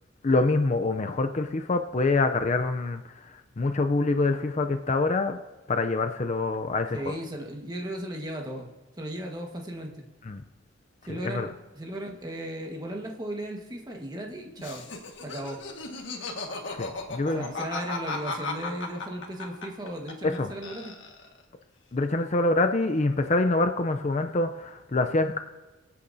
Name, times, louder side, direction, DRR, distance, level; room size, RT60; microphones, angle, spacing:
voice 1, 0.2-3.3 3.6-5.4 5.7-7.2 10.3-10.4 11.2-11.5 16.8-17.5 20.2-20.5 21.9-25.4, left 2 dB, 35° left, 7 dB, 0.5 m, -25 dB
voice 2, 6.9-8.7 9.0-10.0 11.0-14.8 15.2-15.6 17.3-20.9, right 1 dB, 20° right, 1 dB, 1.4 m, -36 dB
Laughter, 14.6-20.4 20.6-21.4, left 3 dB, 60° left, 1.6 m, -35 dB
24.5 x 8.5 x 2.7 m, 1.2 s
head